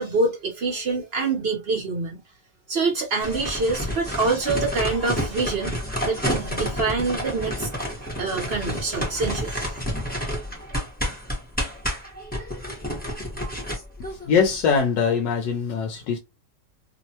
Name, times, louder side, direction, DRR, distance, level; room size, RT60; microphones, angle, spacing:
voice 1, 0.0-2.2 2.7-5.7 6.0-7.9 8.2-9.8, right 3 dB, 55° right, 0.7 m, -26 dB
sound 1, 3.2-14.8, equal, 10° left, 0.7 m, -30 dB
voice 2, 14.3-16.2, left 6 dB, 85° left, 1.3 m, -22 dB
3.1 x 2.1 x 2.7 m
omnidirectional pair, 1.9 m